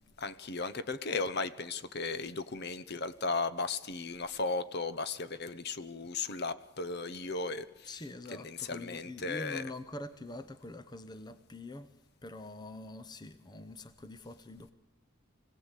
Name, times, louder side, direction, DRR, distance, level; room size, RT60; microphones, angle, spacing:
voice 1, 0.2-7.9 8.3-9.7, left 3 dB, 50° left, 0.9 m, -36 dB
voice 2, 7.8-11.9 12.2-14.7, left 1 dB, 20° left, 0.8 m, -45 dB
25.0 x 17.5 x 8.3 m
head